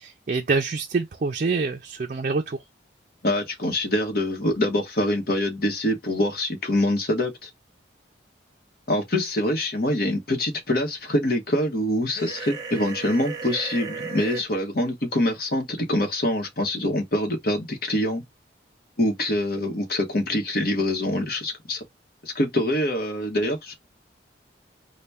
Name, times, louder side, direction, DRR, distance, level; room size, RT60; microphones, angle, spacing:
voice 1, 0.0-2.6, right 4 dB, 45° right, 0.4 m, -26 dB
voice 2, 3.2-7.5 8.9-18.2 19.0-21.8 22.2-23.7, left 1 dB, 55° left, 1.1 m, -25 dB
sound 1, 12.2-14.4, right 5 dB, 20° right, 0.8 m, -35 dB
4.0 x 2.2 x 3.4 m
head